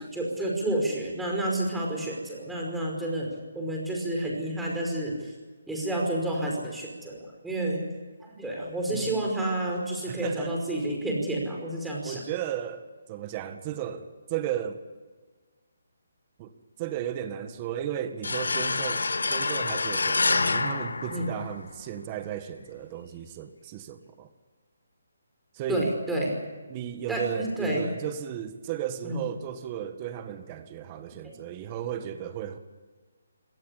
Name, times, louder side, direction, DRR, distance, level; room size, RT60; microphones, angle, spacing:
voice 1, 0.0-3.3 3.5-5.3 5.7-7.8 8.2-12.2 21.1-21.3 25.7-26.3 27.1-27.8 29.0-29.2 31.2-31.4, right 1 dB, 5° right, -1 dB, 5.2 m, -30 dB
voice 2, 8.9-9.3 10.1-10.6 12.0-14.8 16.4-16.5 16.8-24.3 25.5-25.9 26.7-32.6, right 10 dB, 25° right, 8 dB, 1.6 m, -35 dB
sound 1, 18.2-21.8, left 3 dB, 85° left, 1.5 m, -27 dB
25.0 x 18.5 x 8.5 m, 1.4 s
hypercardioid pair, 165°, 0 cm